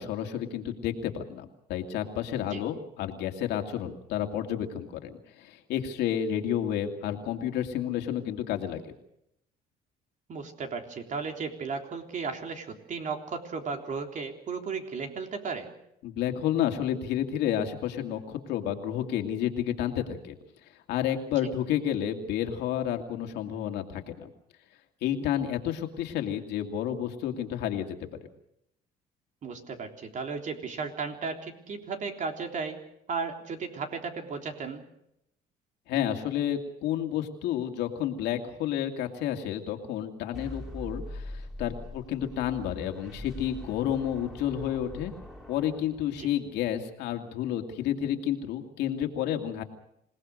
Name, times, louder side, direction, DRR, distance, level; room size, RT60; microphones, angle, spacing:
voice 1, 0.0-8.9 16.0-20.3 20.9-24.3 25.0-28.1 35.9-45.1 45.5-49.6, left 10 dB, 85° left, 4 dB, 2.6 m, -30 dB
voice 2, 10.3-15.7 29.4-32.8 33.1-34.8 46.2-46.3, right 5 dB, 45° right, 4 dB, 3.6 m, -35 dB
sound 1, 40.3-46.5, left 1 dB, 5° right, 4.2 m, -43 dB
27.0 x 18.5 x 6.6 m, 0.78 s
cardioid pair, 110°, 17 cm